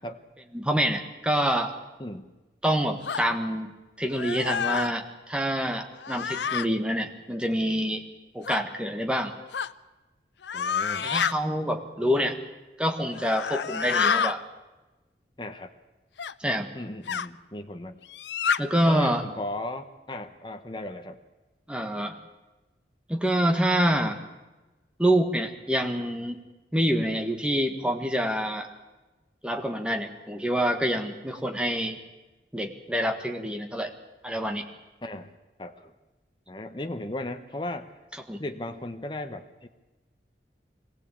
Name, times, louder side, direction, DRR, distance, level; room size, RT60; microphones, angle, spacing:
voice 1, 0.5-1.7 2.6-8.0 8.3-9.3 11.0-12.4 12.8-14.4 16.4-16.7 18.6-19.2 21.7-22.1 23.1-24.2 25.0-26.4 26.7-28.7 29.4-32.0 32.5-33.9 34.2-34.6 38.3-38.4, equal, 5° right, 5 dB, 1.5 m, -26 dB
sound 1, 3.0-3.2 4.1-4.9 6.0-6.7 8.4-8.6 9.5-9.7 10.4-11.3 13.1-14.4 16.2-16.3 17.1-17.3 18.1-18.6, left 6 dB, 85° left, 0.6 m, -28 dB
voice 2, 10.5-11.1 15.4-15.7 16.7-18.0 18.8-21.2 35.0-35.3 35.6-35.9 36.5-37.9 38.4-39.7, left 1 dB, 25° left, 6 dB, 1.0 m, -36 dB
22.0 x 16.5 x 8.5 m, 1.1 s
head